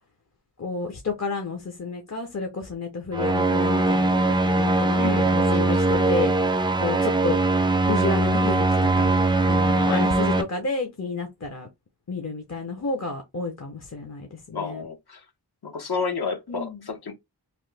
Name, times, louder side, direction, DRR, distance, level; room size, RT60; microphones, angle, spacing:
voice 1, 0.6-6.3 6.8-7.4 7.9-9.1 9.5-11.7 12.1-14.8 16.5-16.8, left 3 dB, 40° left, 0.7 m, -31 dB
sound 1, 3.1-10.4, right 2 dB, 10° right, 0.4 m, -21 dB
voice 2, 5.0-6.1 9.7-10.1 14.5-15.2 15.6-17.1, left 5 dB, 70° left, 0.8 m, -31 dB
3.0 x 2.2 x 3.2 m
wide cardioid pair, 60°, 40 cm